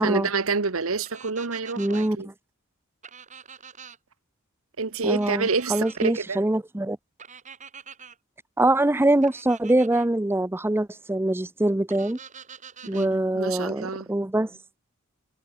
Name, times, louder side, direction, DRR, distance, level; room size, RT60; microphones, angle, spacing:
voice 1, 0.0-2.3 4.8-6.4 12.9-14.1, right 4 dB, 70° right, 1.2 m, -28 dB
sound 1, 1.0-2.1 3.0-4.0 5.1-6.1 7.2-8.2 9.2-10.1 11.9-13.1, right 7 dB, 35° right, 7.1 m, -45 dB
voice 2, 1.8-2.3 5.0-7.0 8.6-12.2 12.9-14.5, right 1 dB, 10° right, 0.5 m, -24 dB
head